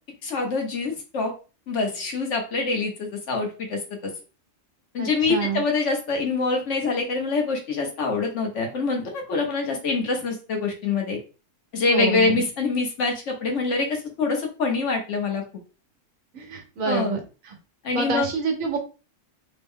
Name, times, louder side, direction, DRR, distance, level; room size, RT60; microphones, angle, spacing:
voice 1, 0.2-1.3 1.7-4.1 4.9-11.2 11.7-15.4 16.9-17.1 17.8-18.3, left 4 dB, 65° left, 2 dB, 1.2 m, -25 dB
voice 2, 5.0-5.6 11.9-12.4 16.3-17.2 17.9-18.8, right 5 dB, 90° right, 3 dB, 1.3 m, -27 dB
3.5 x 2.2 x 3.5 m, 0.33 s
omnidirectional pair, 1.3 m